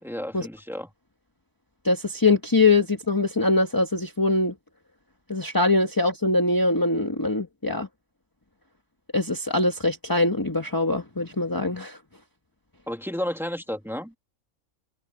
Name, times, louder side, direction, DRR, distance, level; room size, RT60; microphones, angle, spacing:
voice 1, 0.0-0.9 12.9-14.1, equal, ahead, 2.4 m, -32 dB
voice 2, 1.8-4.5 5.3-7.9 9.1-12.0, left 3 dB, 15° left, 1.6 m, -23 dB
omnidirectional pair, 1.3 m